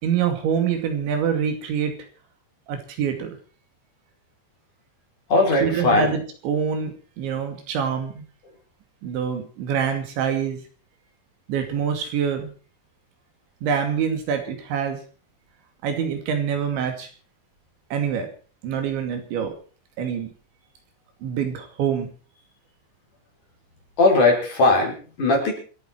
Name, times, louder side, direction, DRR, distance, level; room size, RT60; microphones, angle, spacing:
voice 1, 0.0-2.0 2.7-3.4 5.6-8.3 9.0-10.6 11.5-12.5 13.6-15.0 15.8-17.1 17.9-18.3 18.6-19.5 20.0-20.3 21.2-22.1, right 7 dB, 90° right, 5 dB, 4.9 m, -25 dB
voice 2, 5.3-6.1 24.0-25.5, left 2 dB, 45° left, 0 dB, 6.2 m, -19 dB
27.0 x 9.5 x 4.5 m, 0.40 s
omnidirectional pair, 5.1 m